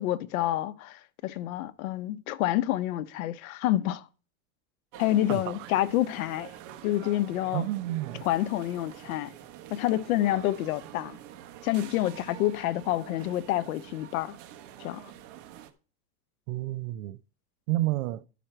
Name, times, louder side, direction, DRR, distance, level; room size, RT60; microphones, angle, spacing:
voice 1, 0.0-4.0 5.0-6.5 6.8-7.6 8.2-9.3 9.7-11.2 11.6-14.4 14.8-15.1, left 14 dB, 75° left, 0.8 m, -28 dB
sound 1, 4.9-15.7, right 10 dB, 45° right, 1.1 m, -47 dB
voice 2, 5.3-5.7 7.5-8.3 16.5-17.2 17.7-18.3, right 16 dB, 60° right, 0.6 m, -30 dB
12.0 x 5.1 x 4.4 m
supercardioid pair, 150°, 43 cm